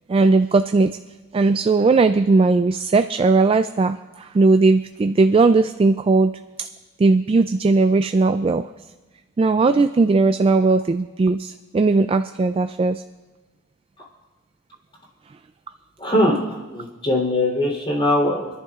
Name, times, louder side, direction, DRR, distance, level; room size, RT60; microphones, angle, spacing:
voice 1, 0.1-1.0 1.3-6.3 6.6-6.7 7.0-8.7 9.4-13.0, right 3 dB, 30° right, 9 dB, 0.3 m, -18 dB
voice 2, 16.0-16.4 16.7-18.5, left 1 dB, 30° left, -4 dB, 3.3 m, -20 dB
28.0 x 11.0 x 2.4 m, 1.2 s
head